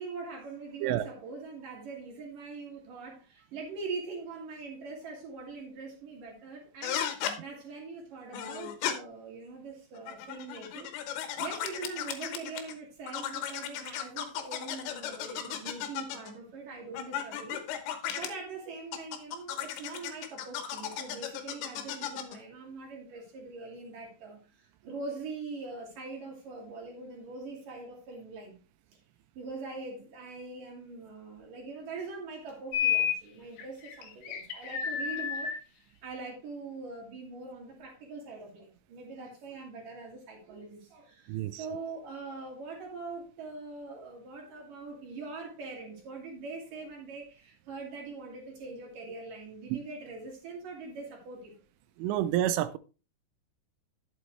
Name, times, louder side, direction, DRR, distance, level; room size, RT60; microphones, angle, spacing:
voice 1, 0.0-17.6 18.1-24.4 24.8-28.6 29.3-35.5 36.0-51.5, right 3 dB, 50° right, 3.3 m, -42 dB
sound 1, 6.8-7.4 8.3-8.9 9.9-12.7 13.1-16.3 16.9-18.3 18.9-22.4, left 10 dB, 85° left, 3.8 m, -35 dB
sound 2, 32.7-33.2 33.6-35.6, left 9 dB, 65° left, 3.3 m, -30 dB
voice 2, 41.3-41.6 49.7-49.8 52.0-52.8, right 12 dB, 85° right, 3.0 m, -29 dB
11.5 x 8.0 x 3.2 m
omnidirectional pair, 5.6 m